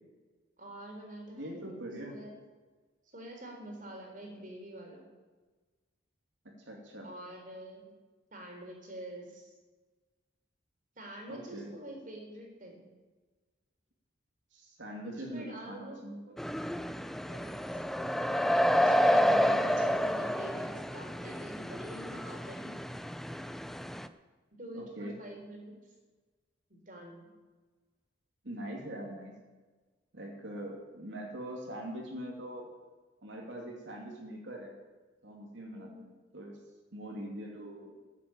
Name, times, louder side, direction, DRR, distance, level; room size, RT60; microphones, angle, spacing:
voice 1, 0.6-1.7 2.0-2.4 3.1-5.0 7.0-7.9 8.3-9.5 11.0-12.9 15.0-16.0 17.3-17.8 18.7-22.7 24.5-25.7 26.7-27.3 35.7-36.1, right 1 dB, 45° right, 1 dB, 3.8 m, -45 dB
voice 2, 1.4-2.2 6.6-7.1 11.3-11.7 14.5-16.3 19.3-19.6 24.7-25.1 28.4-29.3 30.1-32.7 33.2-34.7 35.2-36.6 36.9-37.9, right 1 dB, 75° right, 0 dB, 2.6 m, -42 dB
sound 1, 16.4-24.1, equal, ahead, 0.4 m, -29 dB
13.5 x 8.4 x 8.6 m, 1.3 s
head